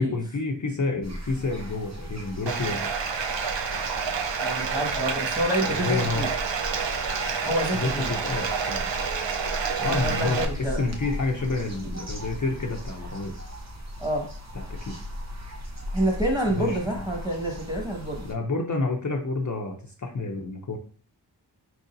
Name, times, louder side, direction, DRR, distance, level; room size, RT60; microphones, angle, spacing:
voice 1, 0.0-2.9 5.6-6.3 7.7-8.9 9.8-13.4 14.5-15.0 16.5-17.0 18.3-20.8, left 3 dB, 45° left, 1 dB, 0.6 m, -29 dB
sound 1, 1.0-18.3, equal, 40° right, 0.8 m, -37 dB
Bathtub (filling or washing), 2.5-10.5, right 6 dB, 85° right, 0.6 m, -29 dB
voice 2, 4.4-6.3 7.4-8.1 9.8-10.8 14.0-14.3 15.9-18.2, right 1 dB, 10° right, 0 dB, 1.5 m, -28 dB
4.7 x 3.9 x 2.6 m, 0.42 s
wide cardioid pair, 60°, 43 cm